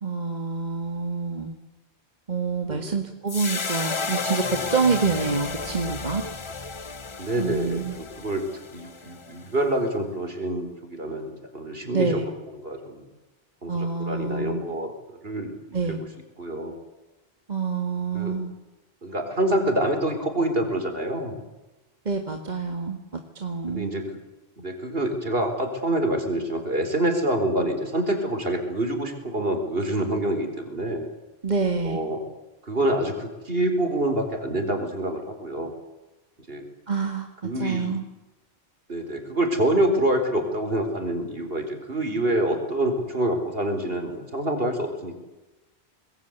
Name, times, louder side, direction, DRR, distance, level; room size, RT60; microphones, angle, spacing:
voice 1, 0.0-1.6 2.3-6.2 7.4-8.0 11.9-12.3 13.7-14.6 15.7-16.0 17.5-18.5 22.1-23.0 23.4-23.9 31.4-32.0 36.9-37.3 37.6-38.0, right 4 dB, 40° right, 5 dB, 2.0 m, -27 dB
sound 1, 3.3-9.7, left 4 dB, 30° left, 0.9 m, -32 dB
voice 2, 7.2-8.4 8.7-12.2 12.6-13.0 13.6-14.9 15.2-15.5 15.9-16.0 16.4-16.8 18.1-18.3 19.0-21.4 23.7-24.0 24.6-31.1 31.8-32.2 32.6-35.7 36.5-36.6 37.4-38.0 38.9-45.2, right 1 dB, 60° right, 6 dB, 4.7 m, -26 dB
26.0 x 21.0 x 8.2 m, 1.1 s
omnidirectional pair, 1.1 m